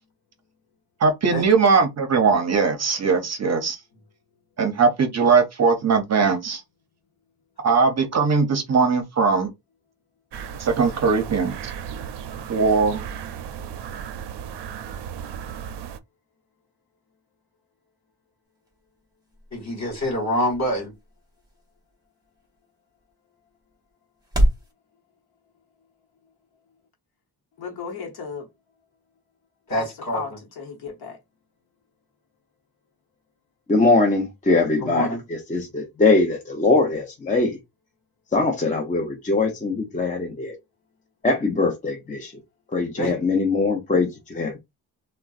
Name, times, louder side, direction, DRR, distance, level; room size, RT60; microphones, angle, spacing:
voice 1, 1.0-3.8 4.6-6.6 7.6-9.5 10.6-11.7 12.5-13.0, right 5 dB, 40° right, 0.6 m, -20 dB
sound 1, 10.3-16.0, right 8 dB, 85° right, 0.5 m, -35 dB
sound 2, 18.4-24.7, right 1 dB, 10° right, 1.0 m, -30 dB
voice 2, 19.5-20.9 29.7-30.4 34.8-35.2 43.0-43.1, equal, 45° left, 1.9 m, -26 dB
voice 3, 27.6-28.5 29.7-30.3 30.6-31.2, left 5 dB, 70° left, 0.9 m, -34 dB
voice 4, 33.7-37.6 38.3-40.5 41.2-42.3 42.7-44.6, left 3 dB, 20° left, 0.6 m, -22 dB
3.7 x 2.1 x 2.4 m
wide cardioid pair, 140°, 40 cm